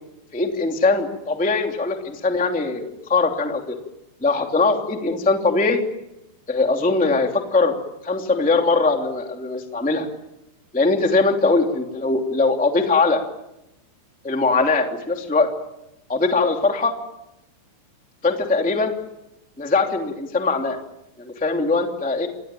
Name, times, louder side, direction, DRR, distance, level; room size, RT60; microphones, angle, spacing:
voice 1, 0.3-3.8 4.2-5.8 6.5-7.8 8.0-10.1 10.7-13.2 14.2-15.5 16.1-16.9 18.2-18.9 19.6-20.8 21.2-22.3, left 3 dB, 5° left, 3 dB, 1.1 m, -21 dB
28.0 x 21.0 x 9.0 m, 0.90 s
omnidirectional pair, 5.5 m